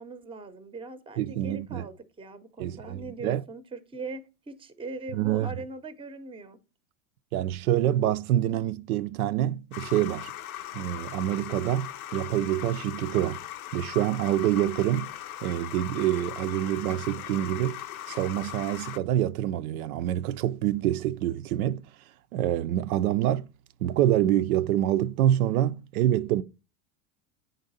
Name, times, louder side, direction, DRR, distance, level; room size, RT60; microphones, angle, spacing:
voice 1, 0.0-6.6, right 3 dB, 15° right, 0.6 m, -40 dB
voice 2, 1.2-1.9 2.6-3.4 5.1-5.5 7.3-10.3 10.7-11.9 12.1-13.4 13.7-15.1 15.4-17.8 18.1-21.8 22.3-23.5 23.8-26.4, right 12 dB, 80° right, 0.5 m, -26 dB
sound 1, 9.7-19.0, left 12 dB, 85° left, 0.7 m, -39 dB
8.3 x 3.9 x 4.0 m
supercardioid pair, 110°, 42 cm